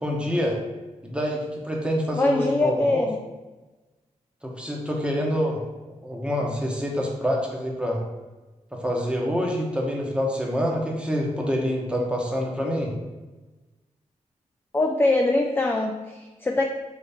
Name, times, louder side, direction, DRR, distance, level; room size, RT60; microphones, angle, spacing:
voice 1, 0.0-0.6 1.0-3.1 4.4-5.6 6.0-8.0 8.7-12.9, equal, 10° right, -1 dB, 1.0 m, -26 dB
voice 2, 2.2-3.2 14.7-16.6, left 2 dB, 15° left, 1 dB, 0.4 m, -22 dB
3.6 x 3.1 x 4.1 m, 1.2 s
cardioid pair, 60°, 13 cm